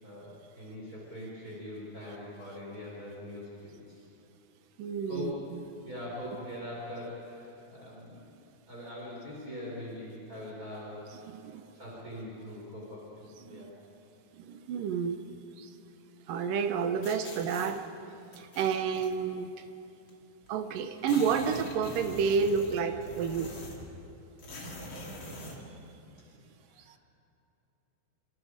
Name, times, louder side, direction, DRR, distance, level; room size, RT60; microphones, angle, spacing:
voice 1, 0.0-4.0 5.1-5.3 5.8-8.3 8.7-11.0 11.7-13.7 26.7-26.9, left 1 dB, 20° right, -6 dB, 6.0 m, -42 dB
voice 2, 4.8-5.3 11.3-11.7 13.4-13.7 14.5-15.2 15.6-15.7 16.3-17.8 18.4-19.5 20.5-23.5, right 6 dB, 70° right, 7 dB, 2.4 m, -30 dB
sound 1, 17.0-17.7 18.3-19.1 20.1-20.2 20.4-20.5 20.8-23.9 24.4-25.6, left 1 dB, 35° left, 2.9 m, -43 dB
28.0 x 27.5 x 5.2 m, 2.7 s
omnidirectional pair, 4.6 m